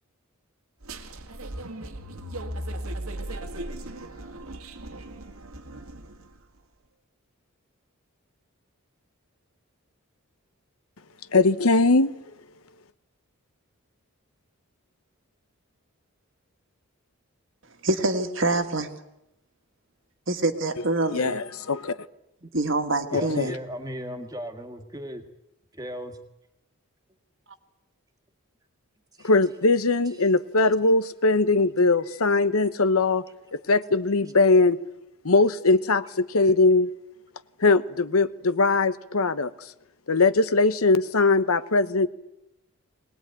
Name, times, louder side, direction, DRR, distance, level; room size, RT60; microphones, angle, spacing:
sound 1, 0.8-6.4, right 1 dB, 75° right, 1.9 m, -37 dB
voice 1, 11.3-12.1 21.1-22.0 23.1-23.5 29.2-33.2 33.5-34.8 35.2-36.9 37.6-39.5 40.1-42.1, left 3 dB, 75° left, 1.0 m, -21 dB
voice 2, 17.8-18.9 20.3-21.4 22.5-23.5, right 2 dB, 55° right, 1.8 m, -25 dB
voice 3, 23.1-25.2 25.7-26.2 29.2-29.3 30.6-30.7, equal, 15° right, 1.8 m, -36 dB
21.5 x 19.5 x 9.1 m
head